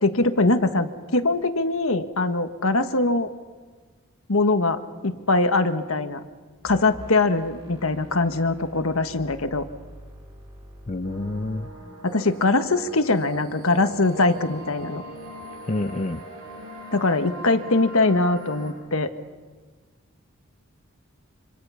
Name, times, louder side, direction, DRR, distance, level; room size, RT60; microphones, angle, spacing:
voice 1, 0.0-3.3 4.3-6.2 6.6-9.7 12.0-15.0 16.9-19.1, left 2 dB, 65° left, 8 dB, 1.5 m, -22 dB
sound 1, 6.6-11.7, equal, 20° right, 6.2 m, -46 dB
voice 2, 10.9-11.7 15.7-16.2, left 2 dB, 30° left, 8 dB, 0.6 m, -28 dB
sound 2, 11.0-18.7, equal, 85° right, 7.4 m, -41 dB
26.5 x 26.0 x 5.8 m, 1.5 s
head